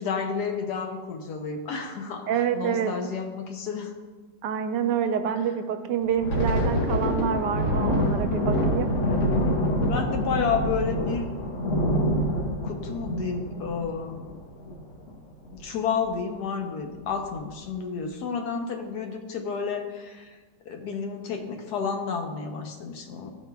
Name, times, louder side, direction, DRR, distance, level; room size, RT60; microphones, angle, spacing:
voice 1, 0.0-3.9 5.4-5.5 9.8-11.3 12.6-14.4 15.5-20.4 20.6-23.3, left 5 dB, 70° left, 4 dB, 1.3 m, -31 dB
voice 2, 2.3-2.9 4.4-8.9, right 8 dB, 80° right, 8 dB, 1.2 m, -27 dB
Thunder, 6.0-15.1 15.4-15.7 16.0-16.3 16.9-17.4, equal, 50° left, 1.2 m, -26 dB
13.0 x 4.5 x 2.3 m, 1.3 s
omnidirectional pair, 1.9 m